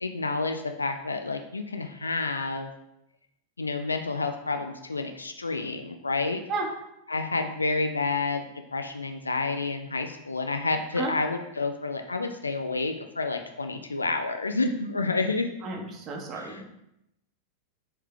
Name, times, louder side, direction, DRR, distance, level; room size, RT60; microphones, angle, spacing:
voice 1, 0.0-2.7 3.6-6.4 7.1-15.5 16.3-16.6, left 3 dB, 80° left, 6 dB, 0.3 m, -29 dB
voice 2, 15.6-16.6, right 3 dB, 30° right, 1 dB, 0.9 m, -32 dB
4.6 x 3.2 x 3.2 m, 0.83 s
figure-of-eight pair, 90°, 0 cm